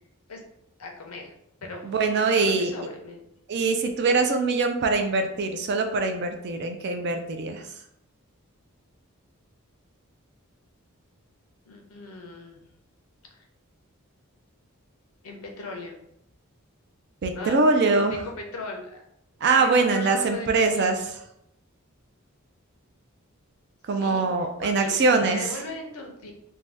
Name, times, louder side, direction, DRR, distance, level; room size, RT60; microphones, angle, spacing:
voice 1, 0.8-1.3 1.6-2.0 2.3-3.3 11.7-12.6 13.3-13.4 15.2-16.0 17.3-17.6 17.9-19.0 19.5-21.0 23.9-26.3, left 3 dB, 85° left, 2 dB, 0.6 m, -39 dB
voice 2, 1.8-2.7 3.5-7.7 17.2-18.2 19.4-21.0 23.9-25.5, right 3 dB, 50° right, 5 dB, 0.3 m, -23 dB
2.6 x 2.2 x 3.3 m, 0.79 s
head